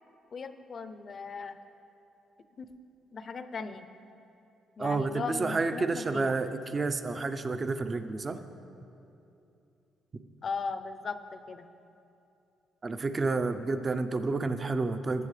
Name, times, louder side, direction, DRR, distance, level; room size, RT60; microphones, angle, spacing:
voice 1, 0.3-1.6 2.6-2.7 3.1-3.9 4.8-6.3 10.4-11.7, left 4 dB, 45° left, 10 dB, 0.6 m, -38 dB
voice 2, 4.8-8.4 12.8-15.3, right 3 dB, 30° right, 9 dB, 0.6 m, -30 dB
19.0 x 7.4 x 3.3 m, 2.8 s
cardioid pair, 90°, 0 cm